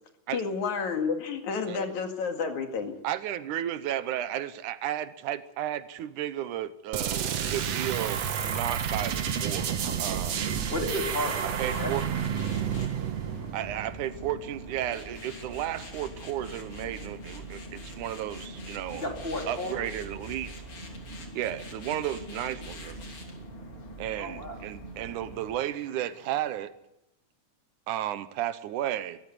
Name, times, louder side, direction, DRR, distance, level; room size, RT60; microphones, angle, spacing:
voice 1, 0.3-2.9, left 5 dB, 75° left, 5 dB, 3.4 m, -30 dB
voice 2, 3.0-10.4 11.6-12.1 13.5-19.0 19.5-20.5 21.4-23.0 24.0-26.7 27.9-29.2, right 12 dB, 90° right, 13 dB, 2.5 m, -33 dB
sound 1, 6.9-14.5, right 8 dB, 60° right, 2.3 m, -30 dB
sound 2, 8.5-25.6, right 3 dB, 40° right, 0.8 m, -44 dB
sound 3, 10.0-26.6, left 4 dB, 45° left, 4.0 m, -48 dB
voice 3, 10.7-12.3 12.6-13.0 18.9-19.9 24.2-24.6, left 1 dB, 20° left, 1 dB, 3.9 m, -34 dB
23.0 x 14.5 x 9.5 m, 0.88 s
omnidirectional pair, 3.4 m